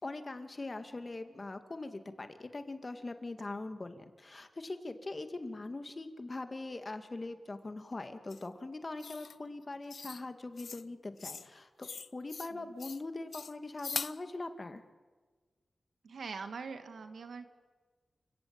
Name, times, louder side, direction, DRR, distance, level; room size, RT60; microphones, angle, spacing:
voice 1, 0.0-14.8, left 2 dB, 35° left, 8 dB, 2.1 m, -42 dB
sound 1, 8.3-8.4 9.0-9.4 9.9-10.2 10.6-10.8 11.2-11.5 11.8-12.5 12.8-13.0 13.3-14.2, left 5 dB, 70° left, 0.7 m, -41 dB
voice 2, 16.0-17.5, right 5 dB, 85° right, 8 dB, 1.9 m, -43 dB
29.0 x 16.5 x 8.8 m, 1.4 s
wide cardioid pair, 80°, 0 cm